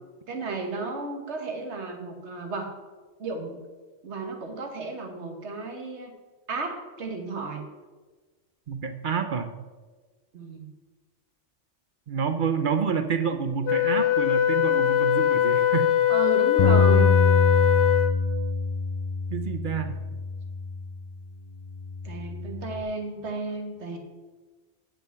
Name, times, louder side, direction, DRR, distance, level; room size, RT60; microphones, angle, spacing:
voice 1, 0.3-2.7 3.2-3.6 4.0-6.1 6.5-7.6 10.3-10.7 16.1-17.1 22.0-24.0, right 3 dB, 75° right, 3 dB, 1.6 m, -33 dB
voice 2, 8.7-9.5 12.1-15.9 19.3-20.0, right 6 dB, 50° right, 8 dB, 0.7 m, -28 dB
Wind instrument woodwind instrument, 13.7-18.3, left 11 dB, 80° left, 1.0 m, -22 dB
Bass guitar, 16.6-21.0 21.7-22.8, left 4 dB, 65° left, 0.3 m, -24 dB
8.2 x 5.6 x 7.0 m, 1.3 s
omnidirectional pair, 1.2 m